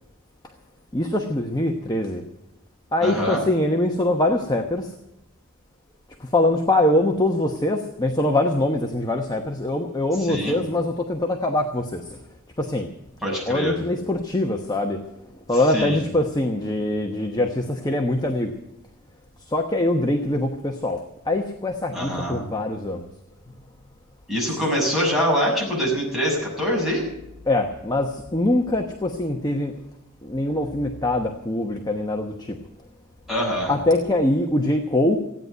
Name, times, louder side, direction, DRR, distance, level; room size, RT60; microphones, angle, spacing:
voice 1, 0.9-2.2 2.9-4.9 6.2-12.2 12.6-12.9 13.5-15.0 15.5-18.5 19.5-21.0 21.3-23.1 27.5-29.7 30.2-32.6 33.7-35.2, left 1 dB, 20° left, 3 dB, 1.0 m, -23 dB
voice 2, 3.0-3.4 10.2-10.6 13.2-13.7 15.5-16.0 21.9-22.4 24.3-27.1 33.3-33.7, equal, ahead, -4 dB, 6.7 m, -24 dB
16.0 x 9.6 x 9.2 m, 0.90 s
head